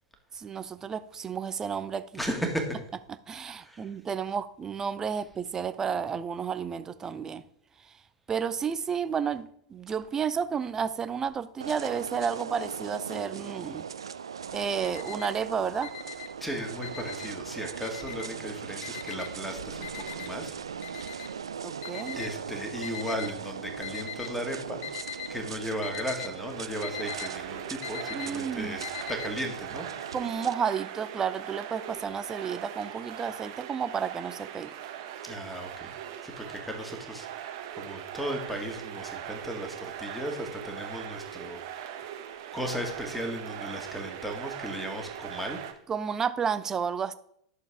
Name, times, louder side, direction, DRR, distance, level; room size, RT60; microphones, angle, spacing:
voice 1, 0.3-2.1 3.3-7.4 8.3-13.9 14.5-15.9 21.6-22.2 28.1-28.8 30.1-34.7 45.9-47.1, right 6 dB, 20° right, 0.6 m, -31 dB
voice 2, 2.2-2.8 3.5-4.0 16.4-20.6 22.2-24.8 25.3-30.1 35.2-36.0 36.2-41.9 42.5-45.6, equal, ahead, 1.9 m, -36 dB
sound 1, 11.6-30.5, right 7 dB, 70° right, 0.4 m, -39 dB
Alarm, 14.5-15.4 15.8-17.4 17.8-18.5 18.8-23.3 23.8-24.4 24.7-25.3 25.6-29.3, left 11 dB, 45° left, 0.9 m, -40 dB
sound 2, 26.2-45.7, right 10 dB, 50° right, 1.2 m, -40 dB
11.5 x 6.8 x 3.6 m
figure-of-eight pair, 90°, 3 cm